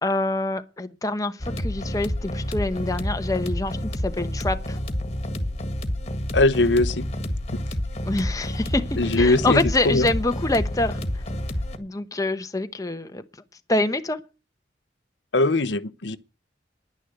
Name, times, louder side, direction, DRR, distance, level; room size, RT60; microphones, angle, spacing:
voice 1, 0.0-4.8 8.0-8.9 9.2-11.2 11.8-13.2 13.7-14.2, left 2 dB, 20° left, 0.9 m, -26 dB
sound 1, 1.4-11.8, left 1 dB, 35° left, 1.7 m, -29 dB
voice 2, 6.3-7.1 7.5-7.6 9.0-9.6 9.8-10.1 15.3-16.2, left 2 dB, 80° left, 0.8 m, -20 dB
10.5 x 10.0 x 8.0 m
head